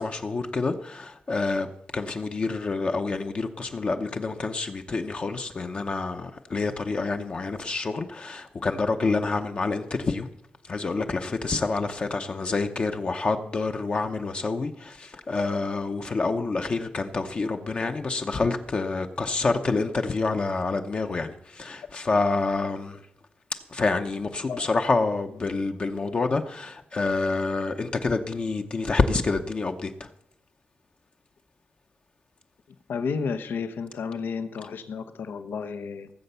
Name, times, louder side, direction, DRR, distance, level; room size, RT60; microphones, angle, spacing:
voice 1, 0.0-1.7 1.9-10.3 10.6-23.0 23.7-30.1, left 3 dB, 35° left, 0.7 m, -27 dB
voice 2, 32.9-36.1, left 5 dB, 80° left, 0.9 m, -32 dB
17.5 x 7.8 x 6.9 m
wide cardioid pair, 180°, 3 cm